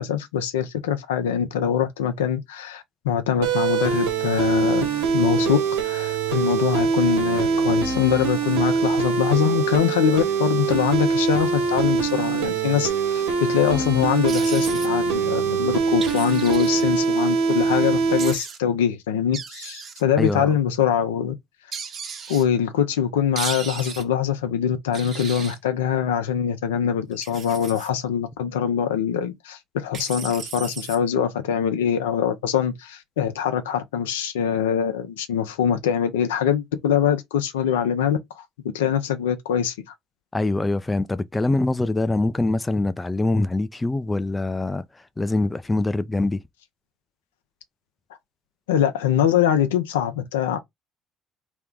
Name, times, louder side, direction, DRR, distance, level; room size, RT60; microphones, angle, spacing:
voice 1, 0.0-4.8 5.1-5.6 5.8-21.3 22.3-38.4 38.7-39.7 48.7-50.6, left 8 dB, 85° left, 0.7 m, -23 dB
sound 1, 3.4-18.3, right 5 dB, 85° right, 1.5 m, -23 dB
sound 2, 14.3-14.9 16.0-16.8 18.2-18.6 19.3-20.0 21.7-22.4 23.4-24.0 24.9-25.6 27.1-27.9 29.9-31.0, right 6 dB, 50° right, 1.3 m, -35 dB
voice 2, 20.2-20.6 40.3-46.4, left 2 dB, 20° left, 0.5 m, -24 dB
3.3 x 3.1 x 3.7 m
hypercardioid pair, 60°, 0 cm